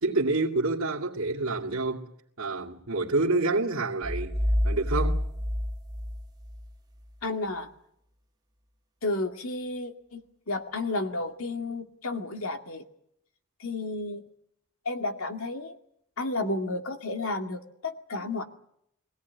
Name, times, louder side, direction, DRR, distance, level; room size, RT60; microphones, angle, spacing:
voice 1, 0.0-2.1 2.4-4.4 4.6-5.2, right 3 dB, 80° right, 2.3 m, -27 dB
sound 1, 4.0-6.7, equal, 20° right, 1.3 m, -28 dB
voice 2, 7.2-7.7 9.0-10.2 10.5-12.8 13.6-14.2 14.9-15.7 16.2-18.4, left 2 dB, 80° left, 2.3 m, -32 dB
23.5 x 17.0 x 9.6 m
head